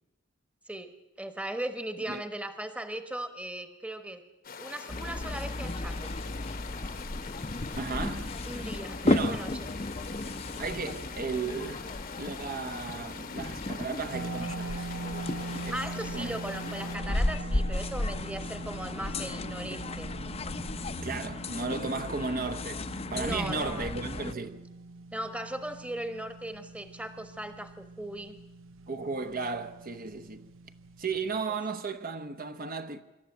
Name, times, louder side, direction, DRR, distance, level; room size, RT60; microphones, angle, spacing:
voice 1, 0.7-4.3 4.6-6.1 8.4-9.7 15.7-20.1 23.2-23.9 25.1-28.4, right 1 dB, 5° right, 1.2 m, -38 dB
sound 1, 4.4-17.0, left 6 dB, 45° left, 1.1 m, -44 dB
sound 2, 4.9-24.3, left 2 dB, 30° left, 0.7 m, -34 dB
voice 2, 7.7-8.3 9.0-9.4 10.6-11.9 12.2-14.9 15.6-15.8 16.1-16.4 21.0-24.6 28.9-30.5 31.0-33.0, right 4 dB, 45° right, 1.0 m, -35 dB
sound 3, 14.1-31.3, right 2 dB, 85° right, 1.0 m, -43 dB
26.0 x 13.0 x 9.1 m
head